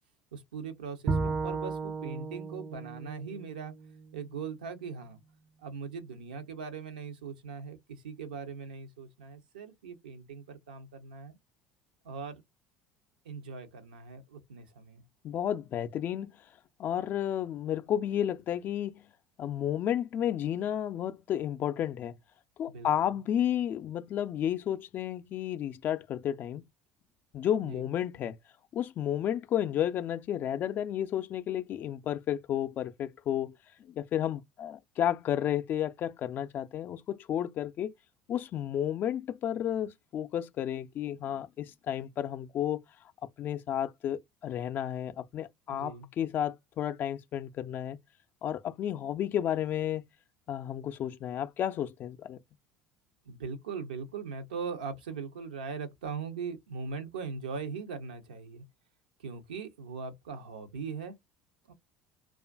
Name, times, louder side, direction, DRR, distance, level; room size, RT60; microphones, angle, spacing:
voice 1, 0.3-3.7 4.1-5.2 5.6-11.4 12.0-12.4 13.2-15.0 22.7-22.9 27.6-27.9 45.7-46.1 53.3-58.6 59.2-61.2 61.7-61.8, right 5 dB, 90° right, 0.6 m, -40 dB
Bowed string instrument, 1.1-4.3, right 4 dB, 25° right, 0.4 m, -34 dB
voice 2, 15.2-16.3 16.8-19.0 19.4-22.2 22.6-26.6 27.3-28.4 28.7-37.9 38.3-42.8 43.4-48.0 48.4-50.0 50.5-52.4, left 10 dB, 45° left, 0.3 m, -32 dB
2.4 x 2.3 x 2.3 m
hypercardioid pair, 75°, 4 cm